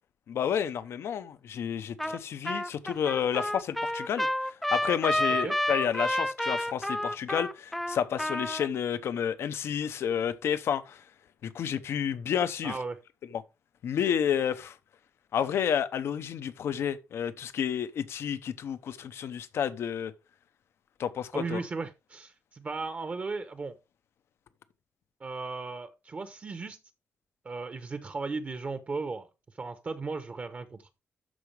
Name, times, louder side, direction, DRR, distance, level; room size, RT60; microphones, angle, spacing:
voice 1, 0.3-11.0 11.4-12.8 13.3-13.4 13.8-14.8 15.3-20.1 21.0-21.6, left 8 dB, 75° left, 0.8 m, -30 dB
Trumpet, 2.0-2.2 2.5-8.7, left 1 dB, 5° left, 0.5 m, -30 dB
voice 2, 12.6-13.0 21.3-23.8 25.2-26.8 27.4-29.3 29.6-30.8, right 4 dB, 35° right, 0.9 m, -36 dB
12.5 x 4.9 x 3.3 m
cardioid pair, 125°, 4 cm